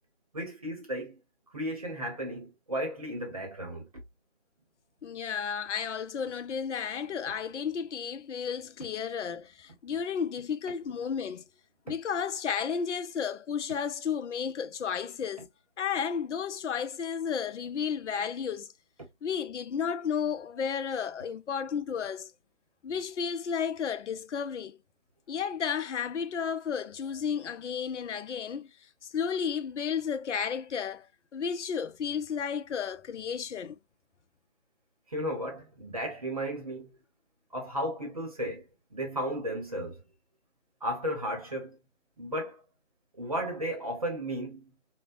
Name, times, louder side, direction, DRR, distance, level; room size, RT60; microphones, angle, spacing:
voice 1, 0.3-1.2 1.5-3.9 35.1-36.9 37.5-40.0 40.8-41.8 42.2-42.6 43.1-44.7, equal, 30° right, 0.8 m, -34 dB
voice 2, 5.0-11.4 11.9-15.5 15.8-18.7 19.2-22.3 22.8-24.8 25.3-28.7 29.1-31.1 31.3-33.8, left 7 dB, 90° left, 0.5 m, -32 dB
2.7 x 2.1 x 2.3 m
figure-of-eight pair, 170°, 34 cm